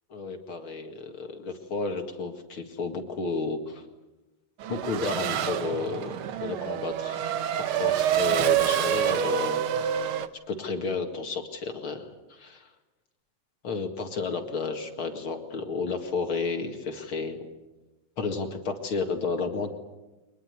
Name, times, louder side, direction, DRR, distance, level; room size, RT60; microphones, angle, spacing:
voice 1, 0.1-3.8 4.7-7.2 7.7-9.6 10.5-12.7 13.6-17.5 18.2-19.7, left 4 dB, 45° left, 5 dB, 2.6 m, -32 dB
Race car auto racing / Accelerating revving vroom, 4.6-10.3, right 10 dB, 65° right, 1.4 m, -27 dB
24.0 x 20.5 x 9.6 m, 1.1 s
omnidirectional pair, 3.4 m